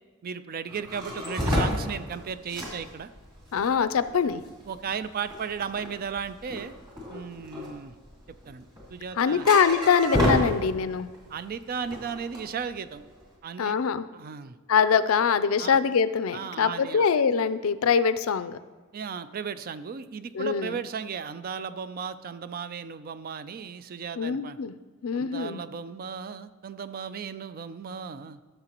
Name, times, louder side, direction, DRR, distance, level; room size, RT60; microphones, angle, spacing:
voice 1, 0.2-3.1 4.6-6.7 7.1-7.9 8.5-9.5 11.3-13.0 13.4-13.8 14.1-14.6 15.6-15.8 16.3-17.1 18.9-24.6 25.1-28.4, right 6 dB, 45° right, 13 dB, 0.4 m, -35 dB
sound 1, 0.7-11.2 11.5-13.2, equal, 20° right, 2.7 m, -30 dB
voice 2, 3.5-4.4 9.2-11.1 13.6-14.1 14.7-18.6 20.3-20.8 24.2-24.7 25.0-25.6, left 6 dB, 75° left, 13 dB, 0.4 m, -23 dB
13.5 x 6.7 x 3.0 m, 1.4 s
head